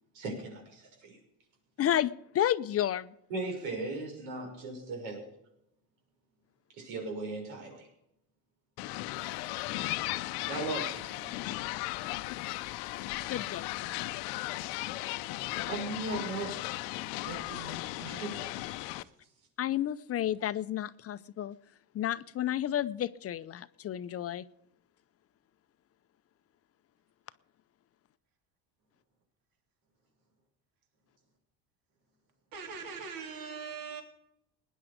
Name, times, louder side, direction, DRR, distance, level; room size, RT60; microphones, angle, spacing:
voice 1, 0.1-1.2 3.3-5.2 6.7-7.9 9.2-9.4 9.8-10.0 10.5-11.3 14.7-15.1 15.7-16.7 17.2-18.8, right 2 dB, 90° right, 6.2 m, -38 dB
voice 2, 1.8-3.1 13.3-14.1 19.6-21.6 21.9-24.5, left 11 dB, 40° left, 0.6 m, -31 dB
sound 1, 8.8-19.0, left 18 dB, 85° left, 0.8 m, -36 dB
voice 3, 32.5-34.0, right 5 dB, 60° right, 3.3 m, -41 dB
19.0 x 10.0 x 5.1 m
cardioid pair, 115°, 38 cm